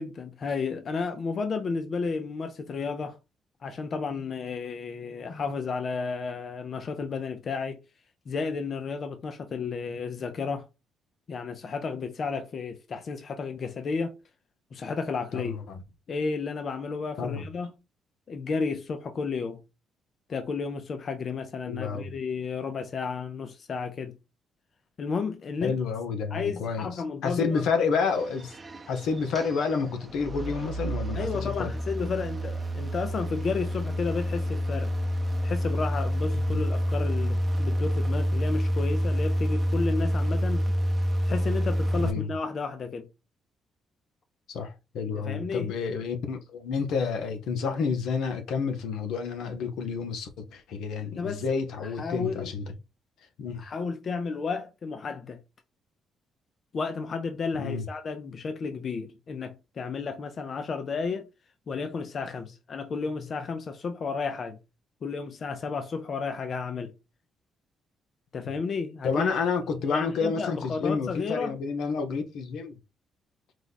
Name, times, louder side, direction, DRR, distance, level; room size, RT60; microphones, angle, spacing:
voice 1, 0.0-3.2 3.6-7.8 8.3-10.7 11.3-14.1 14.7-15.6 16.1-17.7 18.3-19.6 20.3-24.2 25.0-25.7 26.3-27.6 31.1-34.9 35.4-40.7 41.2-43.1 45.1-45.7 51.0-51.4 52.0-52.5 53.6-55.4 56.7-61.3 61.7-64.6 65.0-66.9 68.3-69.3 69.9-71.5, left 5 dB, 50° left, 0.6 m, -32 dB
voice 2, 15.3-15.8 17.2-17.4 21.7-22.1 25.6-26.9 27.2-28.6 28.9-31.7 36.5-36.6 41.9-42.3 44.5-52.6 53.4-53.6 57.6-57.8 69.0-72.8, left 5 dB, 80° left, 0.9 m, -29 dB
sound 1, 28.1-42.1, equal, 25° right, 0.7 m, -28 dB
4.8 x 2.3 x 4.0 m
cardioid pair, 90°, 0 cm